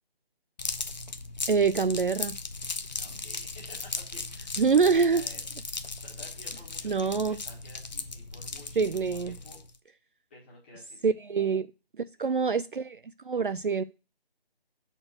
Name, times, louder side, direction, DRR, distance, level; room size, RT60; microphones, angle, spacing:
sound 1, 0.6-9.8, left 3 dB, 45° left, 0.6 m, -37 dB
voice 1, 1.5-2.4 4.6-5.2 6.8-7.4 8.8-9.4 11.0-11.7 12.2-13.0 13.2-13.8, right 5 dB, 55° right, 0.4 m, -25 dB
voice 2, 2.9-5.4 5.8-9.6 10.3-11.1, left 2 dB, 10° left, 1.3 m, -52 dB
6.3 x 4.4 x 5.9 m
figure-of-eight pair, 165°, 31 cm